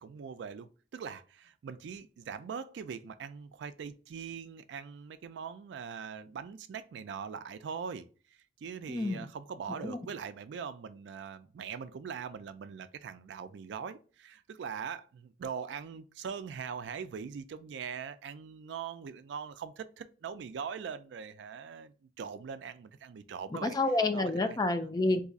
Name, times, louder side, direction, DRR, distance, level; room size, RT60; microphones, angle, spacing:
voice 1, 0.0-23.7 24.1-24.3 24.7-24.8, right 6 dB, 75° right, 0.3 m, -42 dB
voice 2, 8.9-9.2 9.8-10.0 23.6-25.2, left 2 dB, 20° left, 0.3 m, -29 dB
2.6 x 2.4 x 3.9 m
head